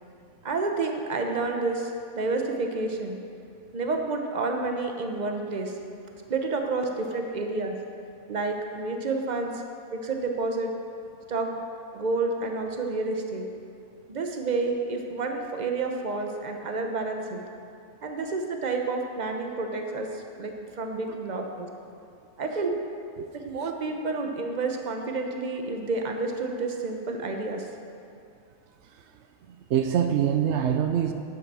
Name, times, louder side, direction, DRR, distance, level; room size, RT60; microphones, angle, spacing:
voice 1, 0.4-3.2 3.7-5.7 6.3-7.7 8.3-9.6 9.9-10.7 11.3-11.6 11.9-13.5 14.1-17.4 18.0-21.7 22.4-22.8 23.3-27.7, right 3 dB, 35° right, 3 dB, 0.8 m, -29 dB
voice 2, 29.5-31.1, right 9 dB, 85° right, 6 dB, 0.6 m, -25 dB
9.9 x 8.0 x 6.1 m, 2.5 s
omnidirectional pair, 1.7 m